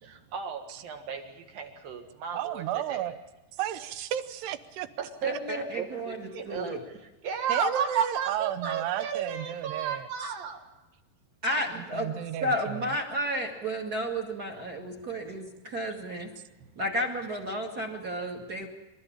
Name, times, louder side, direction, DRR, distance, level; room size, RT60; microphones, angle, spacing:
voice 1, 0.0-2.6 2.9-3.1 5.0-6.8 7.2-10.6, right 7 dB, 65° right, 4 dB, 3.6 m, -33 dB
voice 2, 2.3-3.2 3.5-4.9 7.5-10.1 11.7-13.0, right 11 dB, 80° right, 12 dB, 3.0 m, -33 dB
voice 3, 5.2-6.8 11.4-12.1 12.4-16.3 16.7-18.7, equal, 30° right, 1 dB, 1.8 m, -32 dB
27.5 x 13.5 x 8.8 m, 1.0 s
omnidirectional pair, 4.7 m